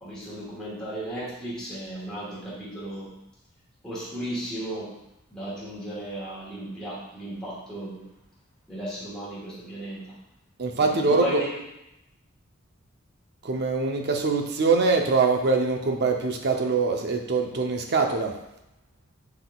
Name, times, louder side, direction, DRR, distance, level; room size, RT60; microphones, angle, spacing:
voice 1, 0.0-3.1 3.8-5.0 5.3-8.1 8.7-10.1 10.8-11.5, right 1 dB, 5° left, -10 dB, 1.4 m, -35 dB
voice 2, 10.6-11.4 13.4-18.3, right 4 dB, 55° right, 3 dB, 0.6 m, -23 dB
5.6 x 4.0 x 2.3 m, 0.87 s
head